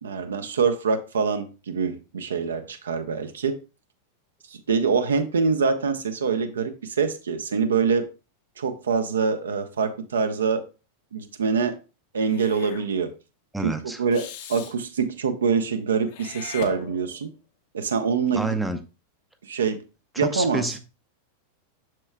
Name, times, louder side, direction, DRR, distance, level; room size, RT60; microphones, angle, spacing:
voice 1, 0.0-3.6 4.7-8.1 8.6-10.6 11.1-11.8 12.1-13.1 13.6-17.3 17.7-18.5 19.4-19.8 20.2-20.8, right 5 dB, 65° right, 0.7 m, -25 dB
Meow / Hiss, 12.2-12.9 14.1-14.7 16.1-17.3, left 9 dB, 50° left, 0.9 m, -39 dB
voice 2, 13.5-14.0 18.3-18.8 20.1-20.8, right 2 dB, 5° right, 0.6 m, -28 dB
7.5 x 6.3 x 2.2 m
figure-of-eight pair, 90°, 0 cm